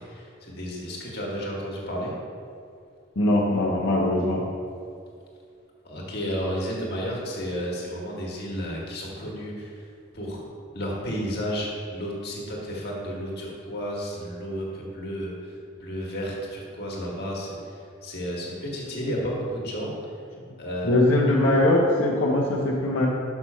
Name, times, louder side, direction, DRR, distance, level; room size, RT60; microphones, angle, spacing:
voice 1, 0.0-2.1 5.8-9.8 10.1-10.4 10.7-20.1 20.6-21.0, equal, 55° left, -3 dB, 1.7 m, -32 dB
voice 2, 3.2-4.4 20.8-23.1, left 1 dB, 80° left, -5 dB, 1.0 m, -21 dB
6.3 x 5.9 x 5.6 m, 2.4 s
head